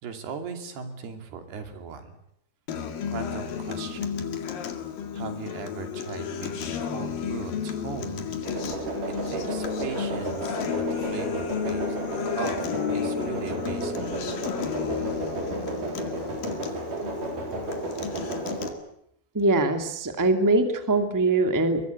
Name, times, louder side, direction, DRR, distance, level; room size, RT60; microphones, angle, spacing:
voice 1, 0.0-2.2 3.1-4.3 5.1-8.3 9.3-12.0 12.4-12.6 12.9-13.9, right 6 dB, 80° right, 7 dB, 4.8 m, -38 dB
Acoustic guitar, 2.7-18.7, left 7 dB, 65° left, 3.7 m, -32 dB
sound 1, 8.4-18.7, right 2 dB, 55° right, 6.1 m, -33 dB
voice 2, 19.3-21.8, right 2 dB, 5° right, 7 dB, 1.6 m, -22 dB
23.5 x 21.5 x 9.5 m, 0.74 s
omnidirectional pair, 4.5 m